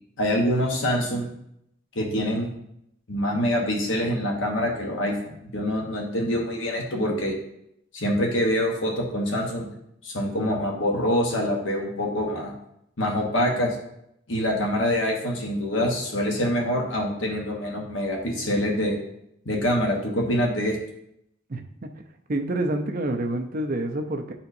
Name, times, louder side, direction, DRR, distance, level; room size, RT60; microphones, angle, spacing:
voice 1, 0.2-1.3 1.9-2.5 3.1-5.1 5.4-7.3 7.9-9.7 10.0-12.5 13.0-13.8 14.3-19.0 19.4-20.8, equal, 75° left, 0 dB, 1.2 m, -25 dB
voice 2, 21.5-21.9 22.3-24.3, right 1 dB, 45° right, 4 dB, 0.6 m, -28 dB
9.5 x 4.3 x 2.7 m, 0.77 s
head